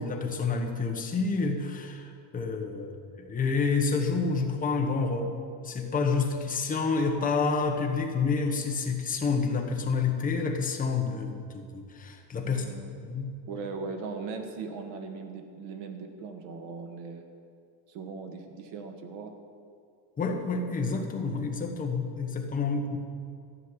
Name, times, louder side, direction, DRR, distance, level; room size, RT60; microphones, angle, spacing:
voice 1, 0.0-5.3 5.6-12.6 13.0-13.4 20.2-23.0, left 4 dB, 20° left, 2 dB, 1.1 m, -29 dB
voice 2, 12.4-12.9 13.5-17.2 17.9-19.3, right 4 dB, 70° right, 5 dB, 1.7 m, -39 dB
14.0 x 6.4 x 9.7 m, 2.3 s
cardioid pair, 170°, 46 cm